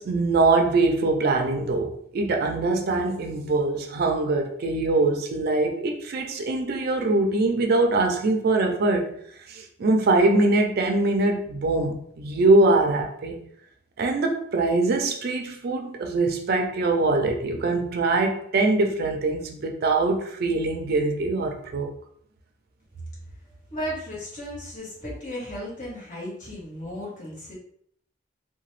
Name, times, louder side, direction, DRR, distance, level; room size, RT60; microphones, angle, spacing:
voice 1, 0.0-9.1 9.5-13.4 14.0-21.9, right 2 dB, 55° right, 0.4 m, -23 dB
voice 2, 23.7-27.5, equal, 45° left, 1.2 m, -35 dB
2.8 x 2.2 x 3.1 m
head